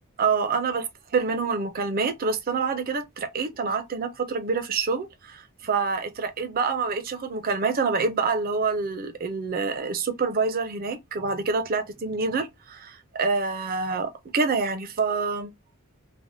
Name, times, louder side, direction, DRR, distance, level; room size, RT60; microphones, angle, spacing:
voice 1, 0.2-15.5, right 4 dB, 45° right, 0.5 m, -27 dB
3.3 x 2.1 x 2.5 m
head